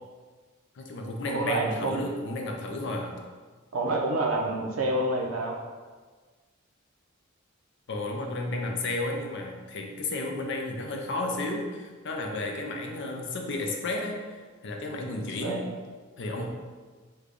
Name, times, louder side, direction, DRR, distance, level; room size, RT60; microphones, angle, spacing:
voice 1, 0.8-3.1 7.9-14.2 14.6-15.6 16.2-16.5, left 2 dB, 55° left, 2 dB, 0.5 m, -32 dB
voice 2, 1.3-2.0 3.7-5.5 15.1-15.6 16.4-16.5, right 2 dB, 75° right, 0 dB, 0.5 m, -28 dB
3.2 x 2.2 x 3.7 m, 1.4 s
head